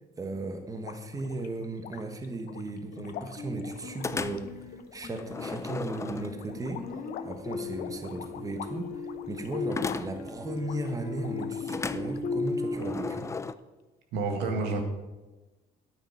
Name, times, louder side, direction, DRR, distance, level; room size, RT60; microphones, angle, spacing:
voice 1, 0.2-6.8 7.2-13.3, right 2 dB, 20° right, 6 dB, 1.2 m, -36 dB
sound 1, 0.7-12.3 12.7-13.5, left 9 dB, 65° left, 0.8 m, -46 dB
sound 2, 3.4-13.2, left 3 dB, 50° left, 1.8 m, -37 dB
sound 3, 4.0-4.6 5.2-6.7 9.7-10.4 11.7-13.5, left 4 dB, 15° left, 0.4 m, -35 dB
voice 2, 14.1-14.8, right 3 dB, 85° right, 3 dB, 1.8 m, -29 dB
9.3 x 8.8 x 5.8 m, 1.1 s
cardioid pair, 110°, 17 cm